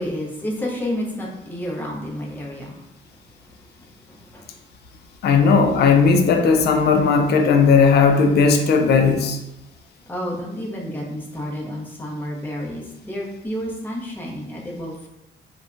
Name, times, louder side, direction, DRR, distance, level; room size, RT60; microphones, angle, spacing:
voice 1, 0.0-2.8 4.1-4.5 10.1-15.1, equal, 10° left, -3 dB, 0.7 m, -30 dB
voice 2, 5.2-9.4, left 5 dB, 55° left, 4 dB, 0.4 m, -16 dB
2.7 x 2.2 x 2.5 m, 0.91 s
cardioid pair, 90°, 20 cm